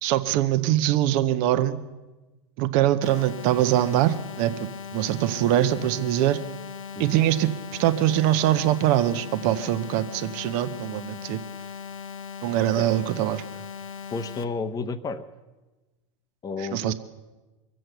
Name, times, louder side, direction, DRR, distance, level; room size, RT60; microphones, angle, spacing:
voice 1, 0.0-1.8 2.6-6.4 7.0-7.5 7.8-11.4 12.4-13.4 16.6-16.9, right 13 dB, 55° right, 11 dB, 1.0 m, -23 dB
sound 1, 3.0-14.4, left 6 dB, 80° left, 1.3 m, -38 dB
voice 2, 14.1-15.2 16.4-16.9, left 4 dB, 25° left, 10 dB, 0.8 m, -31 dB
23.0 x 7.7 x 7.9 m, 1.2 s
hypercardioid pair, 110°, 16 cm